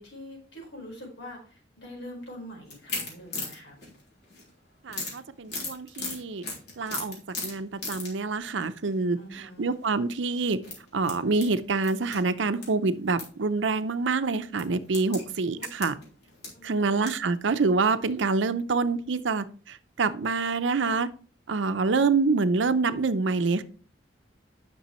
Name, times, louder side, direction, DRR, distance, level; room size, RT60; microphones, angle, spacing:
voice 1, 0.0-3.8 9.2-9.7 15.1-15.3 15.5-15.7 16.5-16.9, equal, 80° left, 0 dB, 4.5 m, -44 dB
sound 1, 2.7-4.5 4.9-8.2 8.6-8.9 9.7-9.9 10.5-12.7 12.9-13.3 13.7-13.8 14.6-17.2 17.7-17.8 18.1-18.2, left 3 dB, 60° left, 3.4 m, -37 dB
voice 2, 4.8-6.4 6.8-10.6 10.9-15.9 16.6-21.1 21.5-23.6, right 4 dB, 85° right, 12 dB, 0.6 m, -26 dB
10.0 x 6.1 x 3.1 m, 0.41 s
head